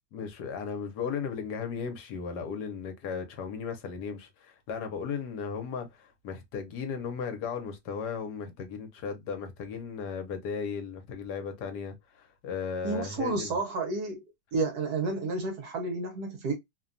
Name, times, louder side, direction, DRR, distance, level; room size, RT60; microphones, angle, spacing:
voice 1, 0.1-13.6, left 6 dB, 75° left, 1.3 m, -36 dB
voice 2, 12.8-14.2 14.5-16.5, right 3 dB, 70° right, 1.2 m, -31 dB
3.0 x 2.2 x 2.4 m
omnidirectional pair, 1.8 m